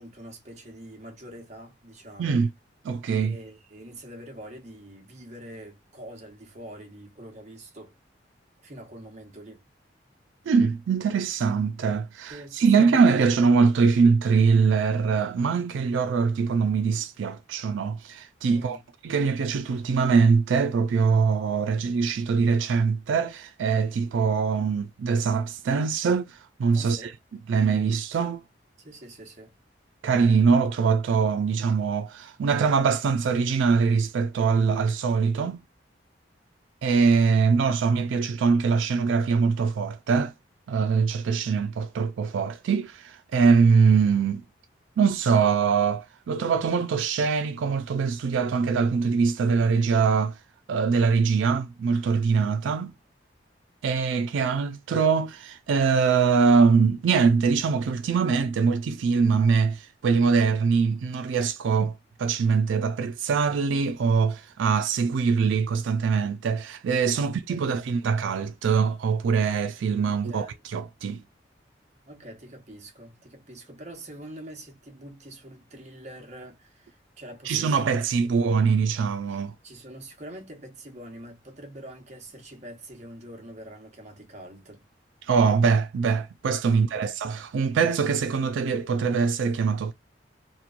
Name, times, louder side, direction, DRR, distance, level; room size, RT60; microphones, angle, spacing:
voice 1, 0.0-2.4 3.2-7.9 8.6-9.6 12.3-13.3 18.5-18.9 26.7-27.1 28.8-29.5 67.1-67.7 70.1-70.6 72.1-78.4 79.3-79.4 79.6-84.8 86.6-87.1, right 1 dB, 40° right, 0.9 m, -44 dB
voice 2, 2.2-2.5 2.8-3.4 10.5-18.8 19.0-27.1 27.5-28.4 30.0-35.6 36.8-40.3 40.7-44.4 45.0-50.4 50.7-52.9 53.8-61.9 62.2-71.2 77.5-79.5 85.2-89.9, right 5 dB, 90° right, 0.3 m, -23 dB
2.9 x 2.2 x 2.4 m
head